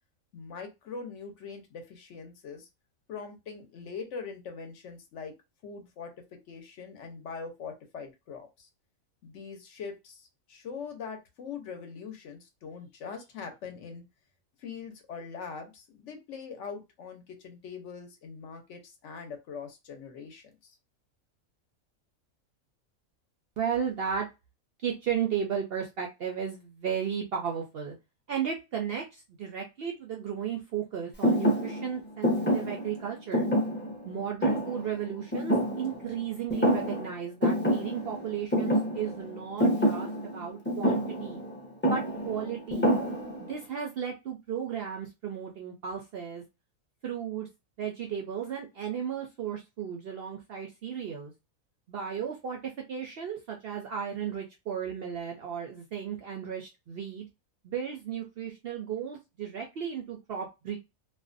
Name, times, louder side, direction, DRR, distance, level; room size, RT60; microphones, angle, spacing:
voice 1, 0.3-2.7 3.1-5.3 5.6-8.7 9.2-14.0 14.6-20.8, left 5 dB, 65° left, 5 dB, 0.9 m, -42 dB
voice 2, 23.6-24.3 24.8-28.0 28.3-33.5 34.0-41.4 41.9-42.9 43.4-46.4 47.0-47.5 47.8-51.3 51.9-57.3 57.6-60.8, right 8 dB, 65° right, 1 dB, 0.6 m, -34 dB
Thump thud, 31.2-36.2 36.5-37.1 37.4-43.5, equal, 15° left, 0.5 m, -28 dB
2.5 x 2.2 x 2.4 m, 0.24 s
omnidirectional pair, 1.4 m